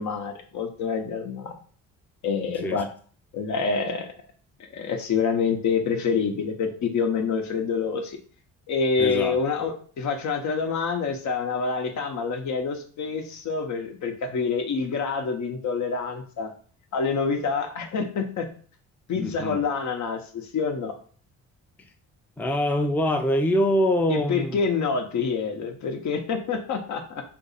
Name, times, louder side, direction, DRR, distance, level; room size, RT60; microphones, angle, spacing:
voice 1, 0.0-1.5 2.2-2.9 3.3-4.1 4.7-8.2 8.7-16.5 16.9-18.5 19.1-21.0 24.1-27.2, left 5 dB, 60° left, 5 dB, 0.8 m, -27 dB
voice 2, 9.0-9.4 19.1-19.6 22.4-24.6, left 1 dB, 5° left, 4 dB, 0.5 m, -24 dB
2.8 x 2.6 x 4.0 m, 0.43 s
supercardioid pair, 70°, 32 cm